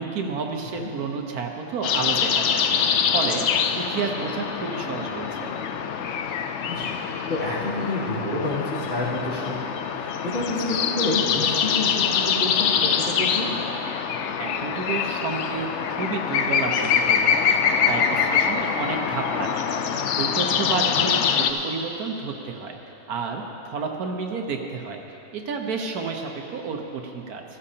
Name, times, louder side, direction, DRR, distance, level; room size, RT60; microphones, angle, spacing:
voice 1, 0.0-3.5 3.7-5.6 14.4-19.7 20.1-22.8 23.1-25.0 25.3-27.4, right 5 dB, 75° right, 3 dB, 1.4 m, -31 dB
sound 1, 1.8-21.5, left 7 dB, 65° left, 0.7 m, -24 dB
voice 2, 7.3-13.5 21.0-21.1, left 2 dB, 45° left, -10 dB, 3.0 m, -29 dB
15.5 x 14.0 x 2.8 m, 2.9 s
omnidirectional pair, 1.6 m